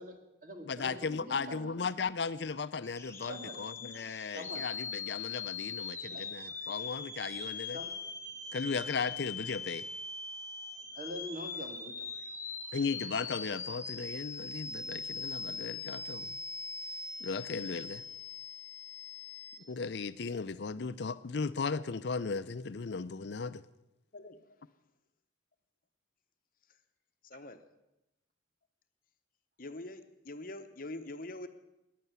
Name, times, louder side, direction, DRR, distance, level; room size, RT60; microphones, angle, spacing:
voice 1, 0.0-1.8 3.3-3.6 4.3-4.7 6.1-6.3 7.7-7.9 10.9-12.1, equal, 45° right, 5 dB, 2.0 m, -44 dB
voice 2, 0.7-7.8 8.5-9.9 12.7-16.4 17.2-18.0 19.7-23.6, left 5 dB, 65° left, 14 dB, 0.5 m, -36 dB
sound 1, 2.8-19.6, left 5 dB, 15° left, 1.2 m, -41 dB
voice 3, 24.1-24.6 26.7-26.8 27.2-27.6 29.6-31.5, left 2 dB, 45° left, 9 dB, 1.0 m, -44 dB
15.0 x 10.5 x 8.2 m, 0.95 s
head